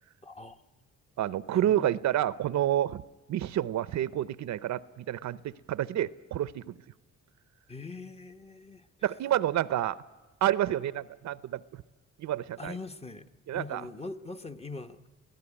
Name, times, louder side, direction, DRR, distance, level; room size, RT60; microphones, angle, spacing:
voice 1, 0.2-0.6 1.5-1.9 7.7-9.1 12.6-15.1, left 3 dB, 20° left, 1.1 m, -42 dB
voice 2, 1.2-3.0 3.3-6.8 9.0-10.0 10.4-11.8 12.2-12.8 13.5-13.8, right 12 dB, 65° right, 0.7 m, -29 dB
22.5 x 16.0 x 9.9 m
cardioid pair, 90°, 30 cm